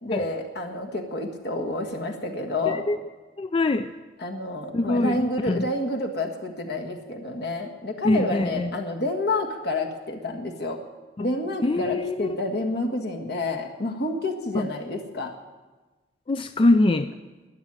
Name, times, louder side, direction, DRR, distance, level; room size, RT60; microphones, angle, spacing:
voice 1, 0.0-2.9 4.2-10.8 11.2-15.3, left 2 dB, 65° left, 3 dB, 1.7 m, -29 dB
voice 2, 2.7-3.0 3.4-3.9 4.7-5.6 8.0-8.7 11.2-11.3 11.6-12.3 14.5-14.7 16.3-17.1, left 2 dB, 30° left, 10 dB, 0.4 m, -23 dB
12.5 x 9.0 x 9.7 m, 1.2 s
head